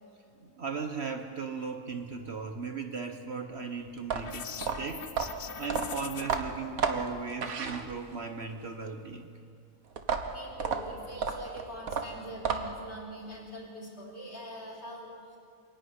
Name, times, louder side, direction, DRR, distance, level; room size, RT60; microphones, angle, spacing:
voice 1, 0.4-5.1 5.6-9.3, right 5 dB, 50° right, 5 dB, 1.3 m, -37 dB
sound 1, 4.0-8.3 10.0-12.9, right 5 dB, 70° right, 1.7 m, -32 dB
sound 2, 4.2-6.4, left 8 dB, 70° left, 1.3 m, -42 dB
voice 2, 10.3-15.1, equal, 45° left, -2 dB, 4.5 m, -43 dB
26.0 x 11.0 x 9.5 m, 2.3 s
omnidirectional pair, 1.6 m